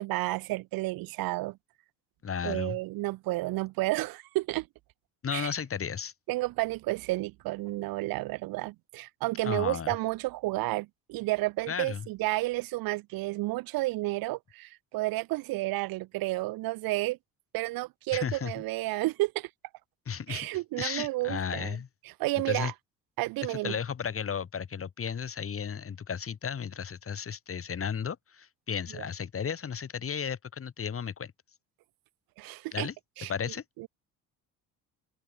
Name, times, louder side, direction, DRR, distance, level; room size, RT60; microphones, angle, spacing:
voice 1, 0.0-1.6 2.4-4.7 5.3-5.5 6.3-17.2 17.5-19.5 20.3-21.8 22.2-22.7 23.2-23.7 28.9-29.0 32.4-32.9 33.2-33.3 33.8-33.9, right 20 dB, 80° right, 4.9 m, -31 dB
voice 2, 2.2-2.8 5.2-6.1 9.4-10.0 11.7-12.1 18.1-18.5 20.1-20.5 20.8-21.9 22.5-22.7 23.5-31.3 32.7-32.9 33.3-33.6, left 7 dB, 40° left, 4.1 m, -34 dB
open air
supercardioid pair, 90°, 34 cm